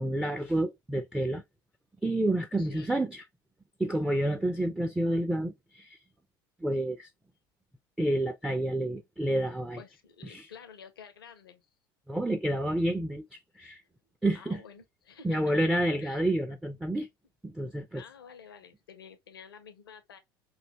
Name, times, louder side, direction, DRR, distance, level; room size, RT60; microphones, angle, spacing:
voice 1, 0.0-1.4 2.0-3.2 3.8-6.0 6.6-7.1 8.0-9.8 10.2-10.5 12.1-13.8 14.2-14.6 15.2-17.1 17.4-18.0, right 1 dB, 5° right, 0.4 m, -29 dB
voice 2, 2.6-2.9 9.8-11.7 14.3-15.7 16.0-16.2 18.0-20.2, left 6 dB, 85° left, 0.6 m, -50 dB
3.2 x 2.5 x 2.8 m
hypercardioid pair, 75°, 12 cm